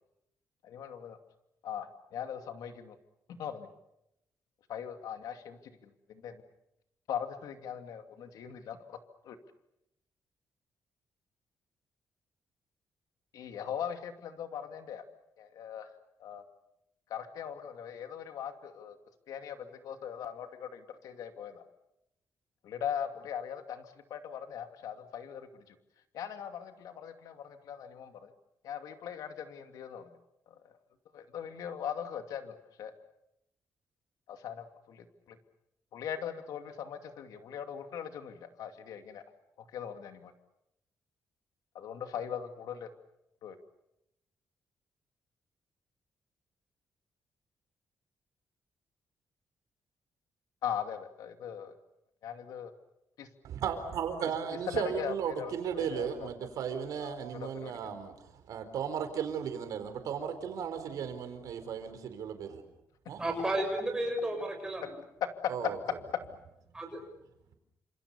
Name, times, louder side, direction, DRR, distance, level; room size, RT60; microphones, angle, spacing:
voice 1, 0.6-1.2 1.6-3.0 3.3-3.7 4.7-6.4 7.1-9.0 9.2-9.4 13.3-15.0 15.4-15.9 16.2-16.4 17.1-19.0 19.3-21.6 22.7-25.8 26.1-28.3 28.6-30.2 30.5-30.7 31.1-32.9 34.3-35.4 35.9-39.2 39.7-40.3 41.7-42.9 43.4-43.6 50.6-51.8 52.2-52.7 53.2-53.3 54.7-56.3 57.0-57.7, left 8 dB, 85° left, 2.5 m, -40 dB
voice 2, 53.4-62.6 63.1-63.2 65.5-65.8, right 7 dB, 75° right, 4.3 m, -35 dB
voice 3, 63.1-64.9 66.7-67.0, right 1 dB, 10° right, 6.7 m, -32 dB
29.5 x 27.0 x 6.9 m
wide cardioid pair, 175°, 6 cm